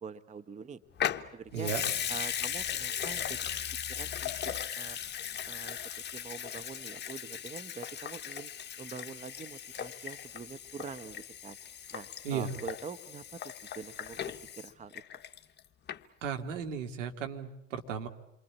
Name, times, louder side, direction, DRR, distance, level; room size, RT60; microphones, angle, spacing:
voice 1, 0.0-0.8 1.3-1.7 2.1-3.4 3.9-4.4 4.8-5.0 5.5-5.8 6.1-8.5 8.8-11.6 11.9-13.4 13.7-14.2 14.6-15.0, right 5 dB, 20° right, 12 dB, 1.1 m, -44 dB
Water tap faucet / Sink (filling or washing) / Liquid, 1.0-15.6 15.9-16.0, left 9 dB, 25° left, 1.3 m, -38 dB
voice 2, 1.5-1.8 12.2-12.5 16.2-18.1, right 7 dB, 70° right, 5 dB, 2.4 m, -35 dB
28.0 x 23.5 x 8.6 m, 0.84 s
figure-of-eight pair, 80°, 39 cm